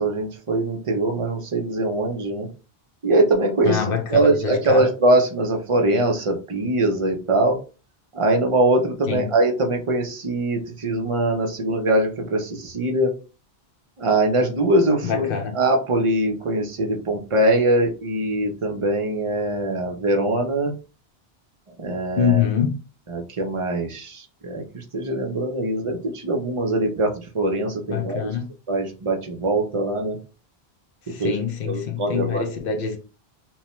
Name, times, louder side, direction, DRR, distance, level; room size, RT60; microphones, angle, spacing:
voice 1, 0.0-2.5 3.0-7.6 8.1-13.1 14.0-20.7 21.8-22.4 23.1-28.3 28.7-30.2 31.1-31.4 31.7-32.4, right 1 dB, 40° right, 0.5 m, -22 dB
voice 2, 3.6-4.8 9.1-9.3 15.0-15.6 22.2-22.8 27.9-28.5 31.1-33.0, left 7 dB, 65° left, 0.7 m, -25 dB
3.0 x 2.1 x 2.9 m
omnidirectional pair, 1.1 m